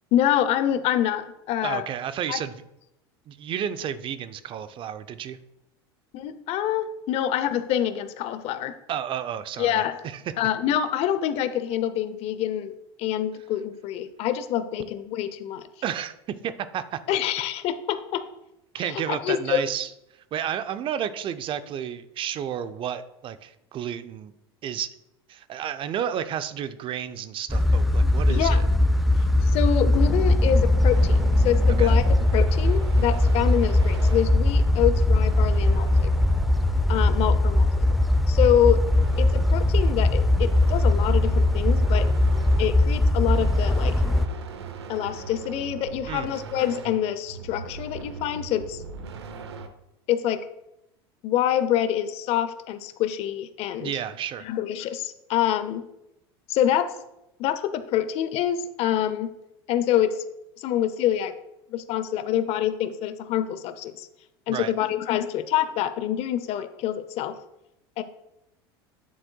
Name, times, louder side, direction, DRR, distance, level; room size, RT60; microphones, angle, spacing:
voice 1, 0.1-1.8 2.3-2.4 6.1-8.7 9.6-10.0 10.4-12.7 13.0-15.6 17.1-18.2 18.8-19.6 28.3-28.6 29.4-36.1 36.9-38.0 38.3-38.8 39.2-42.1 42.6-43.9 44.9-48.8 50.1-50.4 51.2-53.9 54.4-55.8 56.5-56.9 57.4-59.3 59.7-60.2 60.6-61.3 61.7-64.1 64.5-67.4 68.0-68.1, left 10 dB, 50° left, 11 dB, 0.6 m, -26 dB
voice 2, 1.6-2.5 3.3-5.4 8.9-10.2 15.8-17.2 18.7-19.9 20.3-24.3 24.6-24.9 25.3-28.6 31.8-31.9 46.1-46.3 53.8-54.5 64.5-64.7, right 9 dB, 40° right, 12 dB, 0.5 m, -31 dB
sound 1, 27.5-44.3, left 1 dB, ahead, 0.6 m, -20 dB
sound 2, 30.9-38.1 38.5-49.7, right 5 dB, 90° right, 0.7 m, -39 dB
9.2 x 7.4 x 2.3 m, 0.85 s
hypercardioid pair, 90°, 13 cm